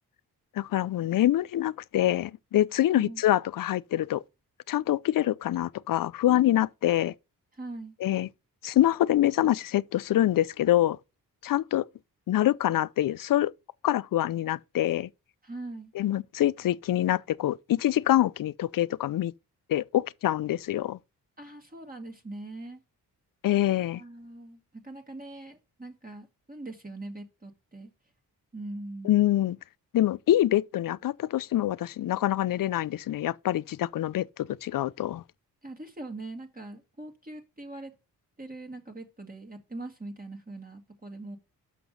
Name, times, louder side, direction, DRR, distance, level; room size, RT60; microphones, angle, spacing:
voice 1, 0.6-4.2 4.7-7.1 8.0-8.3 8.6-11.0 11.4-11.8 12.3-13.5 13.8-15.1 15.9-19.3 19.7-21.0 23.4-24.0 29.0-29.6 29.9-35.2, left 13 dB, 55° left, 0.5 m, -25 dB
voice 2, 7.5-7.9 15.4-15.9 21.4-22.8 23.9-27.9 28.5-29.1 35.6-38.0 38.4-41.4, right 2 dB, 20° right, 1.9 m, -41 dB
6.0 x 5.9 x 5.3 m
cardioid pair, 55°, 39 cm